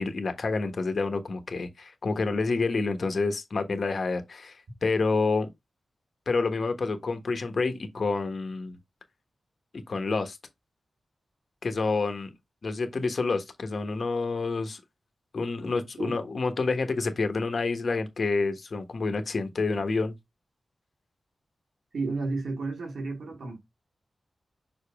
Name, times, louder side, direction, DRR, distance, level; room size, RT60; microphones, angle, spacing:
voice 1, 0.0-5.5 6.3-8.8 9.7-10.4 11.6-12.3 12.6-14.8 15.3-20.1, left 3 dB, 65° left, 1.4 m, -28 dB
voice 2, 21.9-23.6, right 3 dB, 85° right, 2.6 m, -32 dB
6.0 x 5.1 x 3.6 m
cardioid pair, 70°, 0 cm